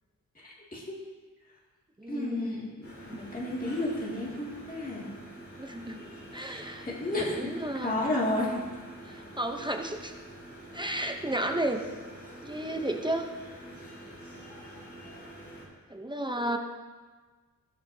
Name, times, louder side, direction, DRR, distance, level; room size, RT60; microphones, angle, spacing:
voice 1, 0.4-0.9 2.1-5.1 6.4-7.5 7.8-8.5, left 1 dB, 25° left, -5 dB, 2.1 m, -32 dB
voice 2, 2.0-2.6 5.6-6.0 6.3-6.9 7.3-7.9 9.1-10.1 10.7-11.8 12.4-13.3 15.9-16.6, right 1 dB, 15° right, 3 dB, 0.6 m, -32 dB
sound 1, 2.8-15.7, right 1 dB, 40° left, 2.7 m, -47 dB
18.5 x 6.3 x 2.7 m, 1.4 s
wide cardioid pair, 150°, 34 cm